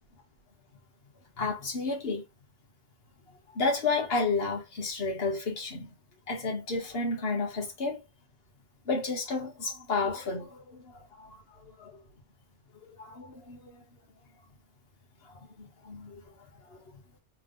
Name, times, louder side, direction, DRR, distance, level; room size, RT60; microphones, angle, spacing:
voice 1, 1.4-2.2 3.5-5.9 6.3-8.0 8.8-11.4 11.8-11.9 13.0-13.6 15.3-16.2 16.7-16.8, left 3 dB, 60° left, 1.6 m, -31 dB
3.7 x 3.5 x 3.2 m
omnidirectional pair, 1.2 m